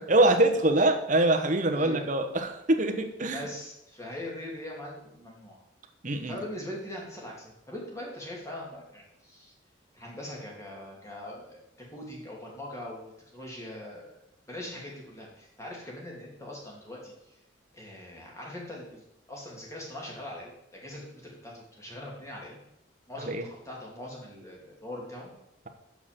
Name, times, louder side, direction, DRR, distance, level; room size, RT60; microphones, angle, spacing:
voice 1, 0.1-3.5 6.0-6.4 23.2-23.4, right 2 dB, 40° right, 5 dB, 1.1 m, -24 dB
voice 2, 1.7-2.1 3.3-5.6 6.3-9.5 9.9-14.2 14.5-17.4 17.7-22.6 23.1-25.3, left 1 dB, 15° left, -2 dB, 2.6 m, -41 dB
6.9 x 6.6 x 7.5 m, 0.81 s
head